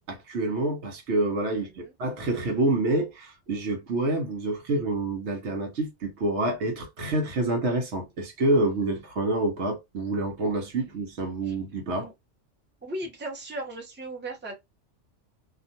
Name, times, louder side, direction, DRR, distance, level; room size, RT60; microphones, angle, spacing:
voice 1, 0.1-12.1, right 2 dB, 65° right, 1.0 m, -27 dB
voice 2, 1.5-1.9 11.4-11.5 11.9-12.1 12.8-14.6, right 1 dB, 10° right, 0.7 m, -37 dB
2.5 x 2.3 x 2.6 m
omnidirectional pair, 1.3 m